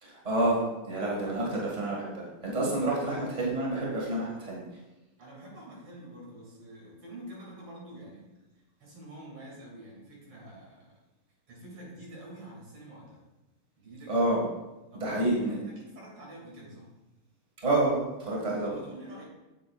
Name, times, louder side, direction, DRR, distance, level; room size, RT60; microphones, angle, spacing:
voice 1, 0.0-4.6 14.1-14.5 14.9-15.5 17.6-18.8, right 2 dB, 15° right, -4 dB, 1.8 m, -28 dB
voice 2, 5.2-8.2 8.8-10.9 11.5-13.2 13.8-14.4 14.9-16.9 18.6-19.2, right 1 dB, 80° right, -4 dB, 3.4 m, -47 dB
8.8 x 7.8 x 2.4 m, 1.0 s
omnidirectional pair, 2.4 m